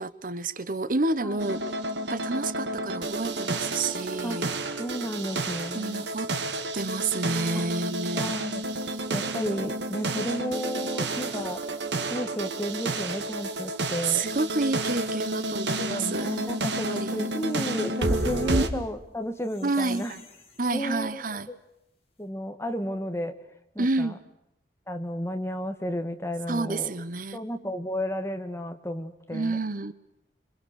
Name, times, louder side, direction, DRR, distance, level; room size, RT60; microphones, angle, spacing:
voice 1, 0.0-1.6 2.0-4.5 5.7-6.3 6.7-8.4 10.8-10.9 14.1-16.3 16.9-17.3 18.4-18.8 19.6-20.2 20.6-21.5 23.8-24.2 26.5-27.4 29.3-29.9, right 3 dB, 50° right, 14 dB, 1.0 m, -29 dB
sound 1, 1.4-18.7, right 2 dB, 85° right, 2.0 m, -30 dB
voice 2, 4.8-6.1 7.5-7.7 8.1-8.6 9.1-11.6 12.1-14.2 15.8-20.1 20.7-21.6 22.2-23.4 23.8-24.2 24.9-26.9 27.3-29.6, equal, 15° left, 7 dB, 1.9 m, -33 dB
sound 2, 17.8-21.3 21.7-21.8 22.1-22.2, left 5 dB, 35° left, 5.7 m, -53 dB
27.0 x 25.0 x 6.5 m, 0.81 s
head